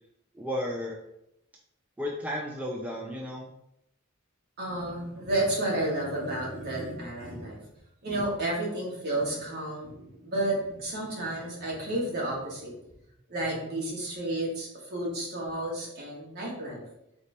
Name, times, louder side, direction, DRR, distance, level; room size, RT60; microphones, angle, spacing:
voice 1, 0.3-1.0 2.0-3.5, left 1 dB, 5° right, -1 dB, 0.3 m, -33 dB
voice 2, 4.6-7.6 8.0-12.7 13.3-16.8, right 1 dB, 50° right, -3 dB, 1.3 m, -31 dB
4.1 x 2.7 x 3.2 m, 0.80 s
head